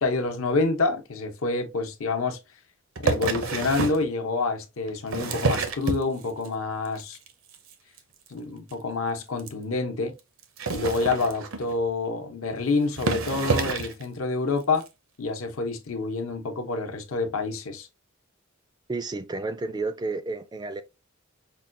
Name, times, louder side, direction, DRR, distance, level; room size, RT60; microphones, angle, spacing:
voice 1, 0.0-2.4 3.0-7.2 8.3-10.1 10.7-14.9 15.2-17.9, left 3 dB, 75° left, 0.8 m, -27 dB
sound 1, 3.0-4.1 4.9-6.5 6.9-7.3 7.5-7.7 8.0-8.1 8.3-8.4 8.7-8.8 9.4-9.5 10.4-11.8 12.5-12.6 12.9-14.0 14.8-14.9, right 4 dB, 75° right, 0.7 m, -28 dB
voice 2, 18.9-20.8, right 3 dB, 20° right, 0.3 m, -31 dB
5.4 x 2.2 x 2.6 m
head